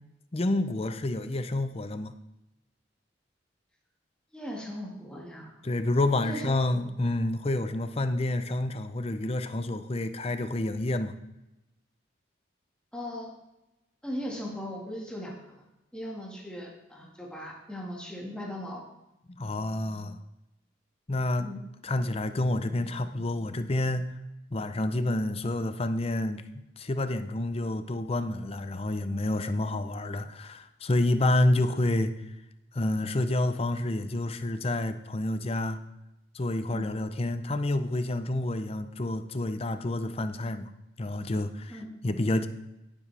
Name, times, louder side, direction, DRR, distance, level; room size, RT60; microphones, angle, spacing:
voice 1, 0.3-2.1 5.6-11.1 19.4-20.2 21.1-21.5 21.8-24.1 24.5-26.4 26.8-32.1 32.7-35.8 36.3-40.7 41.0-41.8 42.0-42.5, left 1 dB, 30° left, 10 dB, 0.6 m, -28 dB
voice 2, 4.3-5.5 6.2-6.9 12.9-13.3 14.0-15.6 15.9-18.8 21.4-21.6 36.7-36.9 41.7-41.9, equal, 5° left, -2 dB, 1.9 m, -38 dB
17.0 x 7.3 x 3.4 m, 0.93 s
head